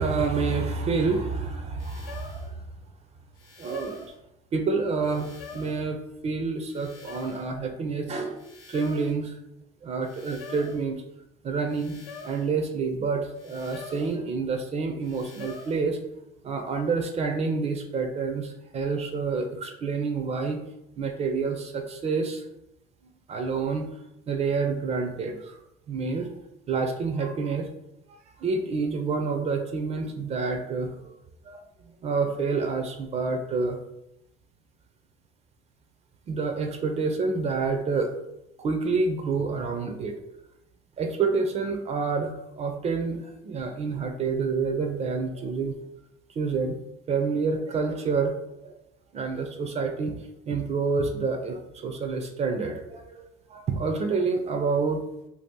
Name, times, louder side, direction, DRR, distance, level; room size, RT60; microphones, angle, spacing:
voice 1, 0.0-2.6 3.6-4.0 4.5-8.4 8.7-9.4 9.8-11.0 11.4-16.0 16.4-20.6 21.0-22.5 23.3-23.9 24.3-25.6 25.9-26.3 26.7-27.7 28.4-31.1 31.4-33.8 36.3-38.1 38.6-40.2 41.0-45.8 46.4-46.8 47.1-48.4 48.6-48.7 49.1-50.2 50.5-55.0, right 4 dB, 35° right, 5 dB, 0.4 m, -28 dB
sound 1, 1.8-2.5 3.4-4.2 5.0-5.9 6.7-7.5 8.4-9.2 10.0-10.8 11.7-12.5 13.4-14.2 15.0-15.8, left 4 dB, 80° left, 0.9 m, -45 dB
2.7 x 2.4 x 3.6 m, 0.86 s
supercardioid pair, 95°, 18 cm